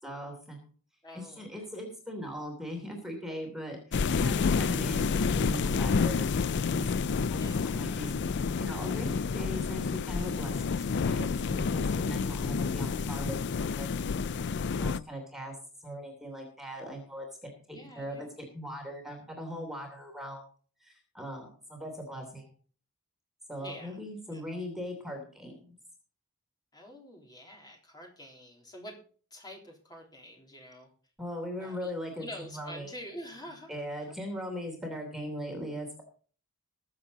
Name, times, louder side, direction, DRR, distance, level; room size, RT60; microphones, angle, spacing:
voice 1, 0.0-0.7 1.1-6.8 7.3-13.9 14.8-15.5 15.8-20.4 20.8-22.5 23.5-25.7 31.2-32.9 33.7-36.0, equal, ahead, 0 dB, 3.1 m, -40 dB
voice 2, 1.0-1.7 7.4-8.1 17.7-18.3 23.6-24.0 24.3-24.4 26.7-29.0 29.3-30.9 31.6-33.7, equal, 20° left, 0 dB, 3.6 m, -47 dB
sound 1, 3.9-15.0, left 5 dB, 55° left, 0.4 m, -29 dB
21.5 x 7.4 x 4.1 m, 0.42 s
head